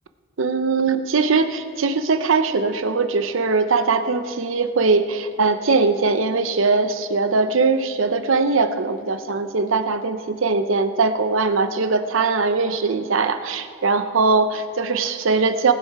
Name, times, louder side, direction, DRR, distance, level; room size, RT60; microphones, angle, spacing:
voice 1, 0.4-15.7, right 4 dB, 80° right, 9 dB, 0.7 m, -21 dB
20.0 x 7.6 x 4.7 m, 2.2 s
head